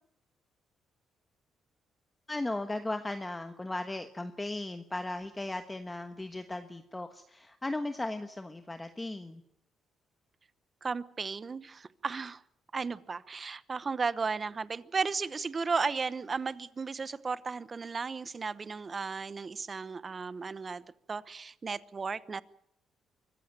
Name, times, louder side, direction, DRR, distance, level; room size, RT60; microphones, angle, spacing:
voice 1, 2.3-9.4, left 2 dB, 15° left, 7 dB, 1.3 m, -36 dB
voice 2, 10.8-12.4 12.7-22.4, right 4 dB, 35° right, 16 dB, 0.9 m, -35 dB
25.0 x 15.0 x 9.0 m, 0.78 s
cardioid pair, 90°, 0 cm